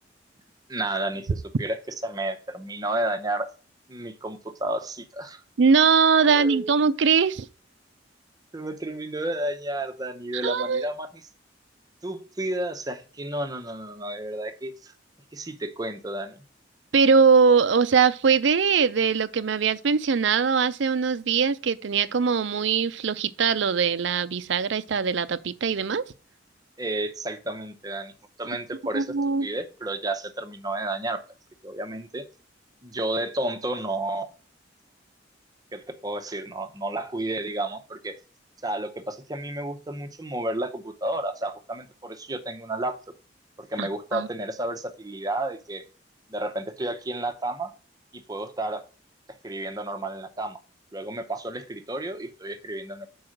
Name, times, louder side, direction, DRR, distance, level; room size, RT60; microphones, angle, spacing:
voice 1, 0.7-3.5 3.9-5.4 6.3-6.7 8.5-11.2 12.0-14.9 15.3-16.4 26.8-28.1 28.4-31.2 31.6-32.3 32.8-34.3 35.7-38.2 38.6-43.0 43.6-45.8 46.3-47.7 48.1-48.9 49.4-50.6 50.9-53.1, right 1 dB, 20° right, 0.7 m, -31 dB
voice 2, 5.6-7.5 10.3-10.9 16.9-26.0 28.9-29.5 43.8-44.3, right 5 dB, 70° right, 0.5 m, -21 dB
6.1 x 4.7 x 6.4 m
head